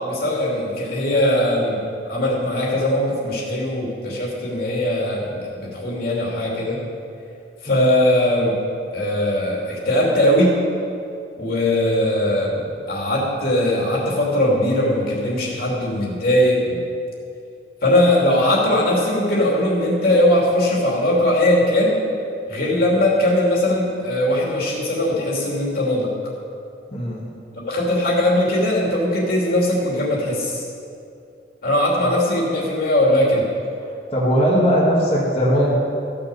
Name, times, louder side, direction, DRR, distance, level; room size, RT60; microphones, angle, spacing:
voice 1, 0.0-6.8 7.6-8.6 8.9-10.5 11.4-16.8 17.8-22.0 22.5-26.1 27.7-30.6 31.6-33.5, left 1 dB, 55° left, -4 dB, 2.9 m, -20 dB
voice 2, 26.9-27.2 32.0-32.1 34.1-35.8, equal, 35° left, -8 dB, 2.0 m, -19 dB
14.5 x 6.8 x 6.8 m, 2.5 s
head